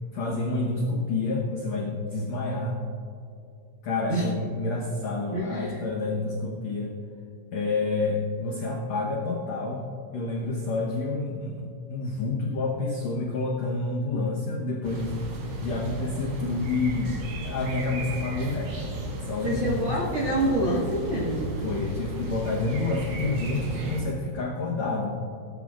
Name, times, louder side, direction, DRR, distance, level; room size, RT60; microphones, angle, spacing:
voice 1, 0.1-2.8 3.8-7.0 7.5-9.8 10.1-15.1 15.6-18.9 19.1-19.9 21.6-25.2, left 3 dB, 75° left, -1 dB, 1.5 m, -29 dB
voice 2, 5.3-5.8 19.4-21.6, right 1 dB, 55° right, -6 dB, 1.4 m, -27 dB
sound 1, 14.8-24.0, right 1 dB, 90° right, 4.2 m, -34 dB
18.5 x 11.0 x 2.4 m, 2.6 s
omnidirectional pair, 4.6 m